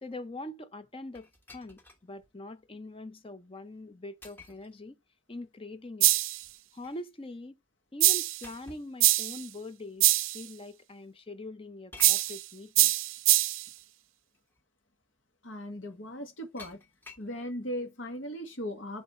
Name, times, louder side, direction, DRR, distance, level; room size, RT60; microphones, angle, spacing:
voice 1, 0.0-5.0 5.3-6.1 6.7-7.5 7.9-10.1 10.3-12.9, left 2 dB, 25° left, 0.7 m, -43 dB
sound 1, 1.1-2.1 2.6-2.7 4.2-4.7 6.4-7.1 8.4-8.9 10.0-10.1 11.9-12.4 13.8-13.9 14.3-14.6 16.6-17.3, left 3 dB, 10° left, 1.2 m, -50 dB
sound 2, 6.0-6.4 8.0-8.4 9.0-9.4 10.0-10.4 12.0-12.4 12.7-13.7, right 17 dB, 80° right, 0.5 m, -23 dB
voice 2, 15.4-16.8 17.2-19.0, equal, 75° left, 1.9 m, -38 dB
8.5 x 3.4 x 4.2 m
head